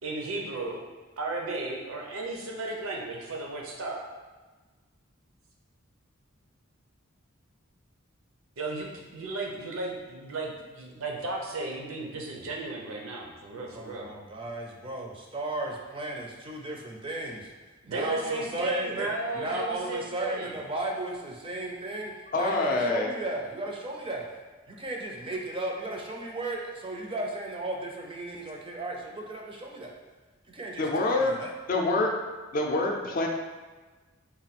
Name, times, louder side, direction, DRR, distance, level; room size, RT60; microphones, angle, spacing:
voice 1, 0.0-0.8 1.2-4.0 8.6-14.1 17.8-20.5, right 2 dB, 85° right, -1 dB, 0.7 m, -34 dB
voice 2, 13.7-17.5 17.9-19.1 19.3-24.3 24.7-29.9 30.5-31.5, right 2 dB, 25° right, 0 dB, 0.4 m, -35 dB
voice 3, 22.3-23.1 30.8-31.4 31.7-32.1 32.5-33.3, left 2 dB, 40° left, 1 dB, 0.5 m, -26 dB
4.0 x 2.3 x 4.1 m, 1.3 s
head